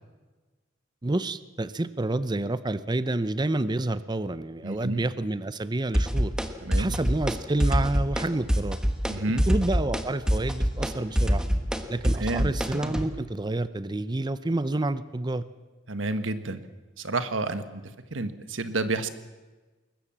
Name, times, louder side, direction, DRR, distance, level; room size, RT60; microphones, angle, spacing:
voice 1, 1.0-6.3 6.8-8.8 9.5-11.4 11.9-15.4, right 2 dB, 25° right, 15 dB, 0.6 m, -28 dB
voice 2, 4.6-5.0 6.6-6.8 9.1-9.4 12.1-12.5 15.9-16.6 17.0-17.8 18.1-19.1, right 2 dB, 85° right, 11 dB, 1.5 m, -29 dB
sound 1, 5.9-6.5 6.7-7.4 7.6-8.2 8.5-9.1 9.4-13.1, equal, 5° right, 1.5 m, -24 dB
21.5 x 20.0 x 7.5 m, 1.3 s
head